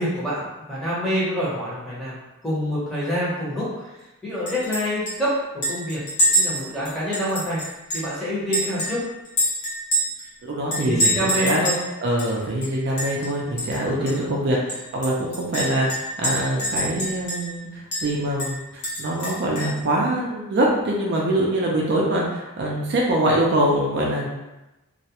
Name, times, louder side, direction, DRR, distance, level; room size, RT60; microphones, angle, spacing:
voice 1, 0.0-2.2 2.4-3.9 4.2-6.0 6.3-7.6 7.9-9.0 10.8-11.9 14.0-14.3, equal, ahead, -9 dB, 0.7 m, -26 dB
Chink clink, 4.5-4.8 5.1-5.2 5.6-8.1 8.5-10.3 10.7-11.8 12.2-12.3 12.6-13.3 13.6-13.8 14.1-14.2 14.7-17.6 17.9-18.0 18.4-19.8, equal, 55° left, 0.8 m, -25 dB
voice 2, 10.4-11.6 12.0-24.3, right 1 dB, 50° right, -3 dB, 0.4 m, -24 dB
2.3 x 2.1 x 2.8 m, 1.0 s
head